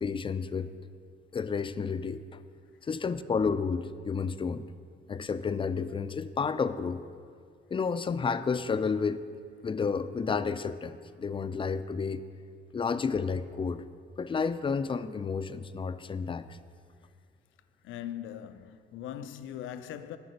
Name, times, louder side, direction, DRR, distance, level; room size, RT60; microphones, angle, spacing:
voice 1, 0.0-0.7 1.3-2.4 2.8-4.7 5.1-7.0 7.7-9.2 9.6-12.2 12.7-13.8 14.2-16.6, left 5 dB, 25° left, 0.4 m, -31 dB
voice 2, 17.8-20.2, left 10 dB, 80° left, 0.5 m, -40 dB
8.0 x 5.9 x 6.5 m
cardioid pair, 90°, 20 cm